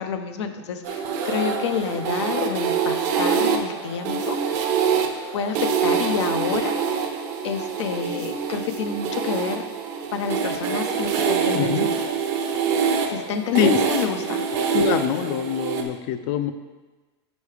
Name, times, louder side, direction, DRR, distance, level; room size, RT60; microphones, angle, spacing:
voice 1, 0.0-4.7 5.3-6.8 7.4-9.7 10.1-11.9 13.1-14.5, left 7 dB, 90° left, 7 dB, 0.6 m, -29 dB
sound 1, 0.8-15.8, right 6 dB, 50° right, 0.7 m, -25 dB
voice 2, 11.5-11.9 13.5-13.8 14.7-16.5, left 9 dB, 50° left, 10 dB, 0.5 m, -24 dB
5.2 x 4.6 x 4.9 m, 1.2 s
supercardioid pair, 145°, 14 cm